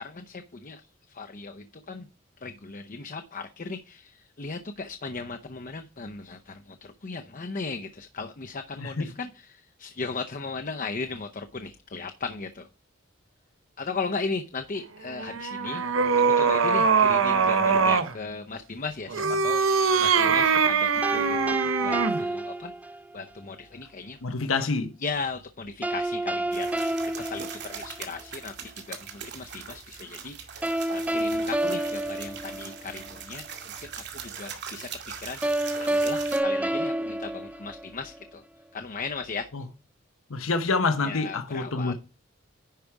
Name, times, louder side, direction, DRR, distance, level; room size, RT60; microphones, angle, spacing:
voice 1, 0.0-2.1 2.4-12.7 13.8-15.8 16.1-21.4 21.8-22.7 23.1-24.2 24.6-24.7 25.0-38.4 38.7-39.5 41.0-41.9, left 4 dB, 40° left, 0.7 m, -37 dB
voice 2, 8.8-9.1 24.2-24.9 39.5-39.6 40.3-41.9, left 3 dB, 90° left, 1.0 m, -27 dB
sound 1, 15.1-18.1 19.1-22.2, right 5 dB, 80° right, 0.9 m, -22 dB
sound 2, 21.0-23.2 25.8-28.2 30.6-33.1 35.4-38.2, right 1 dB, 5° right, 0.4 m, -29 dB
sound 3, 26.5-36.4, right 7 dB, 55° right, 2.2 m, -41 dB
10.5 x 5.0 x 4.6 m
head